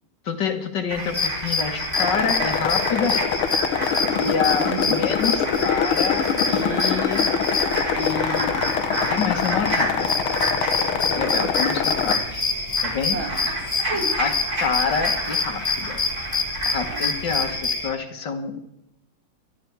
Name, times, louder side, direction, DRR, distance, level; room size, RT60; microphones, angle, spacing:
voice 1, 0.2-3.3 4.2-7.3 8.0-8.6 9.1-10.1 11.1-12.4 12.8-13.2 14.2-16.1 16.6-18.6, left 6 dB, 60° left, 6 dB, 2.1 m, -27 dB
sound 1, 0.9-17.6, right 1 dB, 45° right, 5.7 m, -31 dB
sound 2, 1.0-17.9, left 3 dB, 15° left, 2.7 m, -27 dB
sound 3, 2.0-12.2, left 7 dB, 90° left, 2.0 m, -24 dB
voice 2, 4.0-5.0 10.8-11.5 13.1-14.2 16.9-17.0, right 3 dB, 75° right, 5 dB, 2.9 m, -33 dB
23.5 x 12.0 x 4.7 m, 0.88 s
omnidirectional pair, 2.3 m